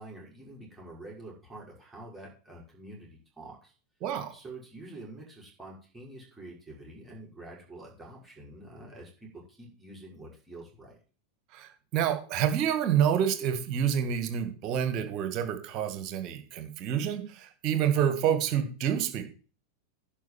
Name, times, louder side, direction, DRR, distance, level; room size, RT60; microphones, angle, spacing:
voice 1, 0.0-3.7 4.3-11.0, right 2 dB, 10° right, -3 dB, 6.0 m, -47 dB
voice 2, 4.0-4.3 11.5-19.2, right 9 dB, 40° right, 8 dB, 2.0 m, -28 dB
10.5 x 5.3 x 7.7 m, 0.38 s
figure-of-eight pair, 90°, 0 cm